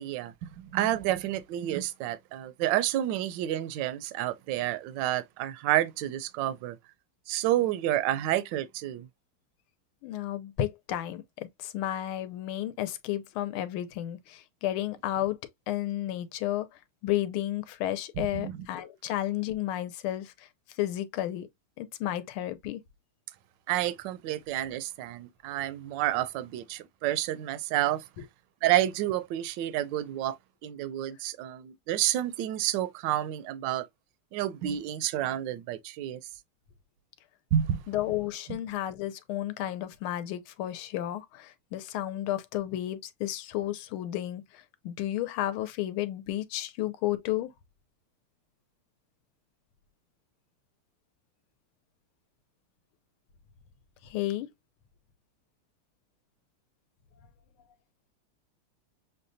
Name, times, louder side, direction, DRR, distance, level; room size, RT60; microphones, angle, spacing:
voice 1, 0.0-6.8 7.3-9.1 18.4-18.5 23.7-28.0 28.6-33.9 34.3-36.2 37.5-37.8, right 13 dB, 75° right, 1.1 m, -29 dB
voice 2, 10.0-15.4 15.7-16.7 17.0-20.5 20.8-21.5 21.8-22.8 37.9-47.5 54.0-54.5, left 13 dB, 80° left, 1.5 m, -32 dB
6.6 x 2.2 x 2.5 m
omnidirectional pair, 2.3 m